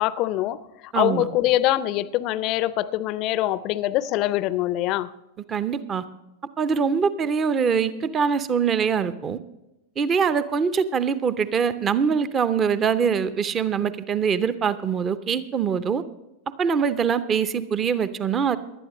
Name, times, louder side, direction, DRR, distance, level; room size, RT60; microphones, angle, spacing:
voice 1, 0.0-5.1, left 14 dB, 40° left, 0.5 m, -24 dB
voice 2, 0.9-1.3 5.5-6.0 6.6-9.4 10.0-16.0 16.6-18.6, right 6 dB, 25° right, 0.7 m, -23 dB
18.0 x 12.0 x 3.1 m
figure-of-eight pair, 90°, 0 cm